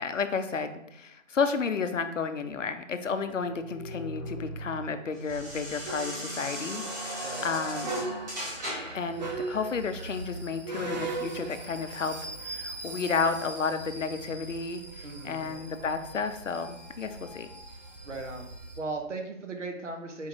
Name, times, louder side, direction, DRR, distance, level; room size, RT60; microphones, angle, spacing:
voice 1, 0.0-8.1 8.9-17.5, left 5 dB, 70° left, 9 dB, 0.6 m, -32 dB
sound 1, 3.2-9.1, equal, 15° right, 0.9 m, -37 dB
sound 2, 5.3-18.8, right 2 dB, 35° right, 0.5 m, -40 dB
voice 2, 15.0-15.5 18.0-18.5 18.8-20.3, right 3 dB, 65° right, 4 dB, 0.9 m, -37 dB
4.4 x 3.0 x 3.7 m, 0.76 s
figure-of-eight pair, 140°, 39 cm